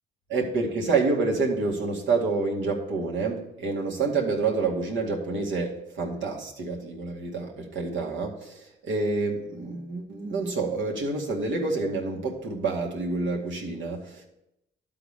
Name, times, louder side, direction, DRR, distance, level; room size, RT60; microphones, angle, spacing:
voice 1, 0.3-14.2, right 3 dB, 70° right, -1 dB, 2.1 m, -28 dB
11.5 x 4.0 x 6.7 m, 0.83 s
cardioid pair, 90°, 20 cm